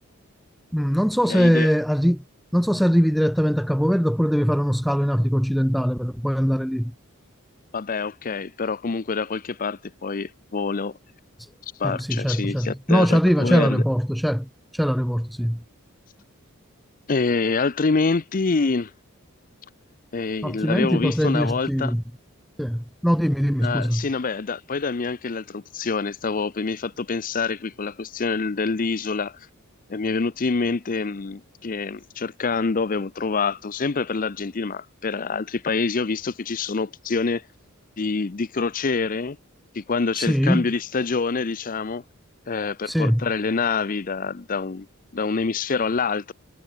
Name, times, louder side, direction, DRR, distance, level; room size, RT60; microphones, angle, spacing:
voice 1, 0.7-2.2 2.5-6.9 11.8-15.6 20.4-22.0 22.6-24.1 40.1-40.7 42.8-43.2, equal, ahead, 0.3 m, -21 dB
voice 2, 1.3-1.7 7.7-10.9 11.8-13.8 17.1-18.9 20.1-21.9 23.6-29.4 29.9-37.4 38.0-39.4 39.7-42.0 42.5-44.9 45.1-46.3, left 4 dB, 40° left, 0.6 m, -26 dB
head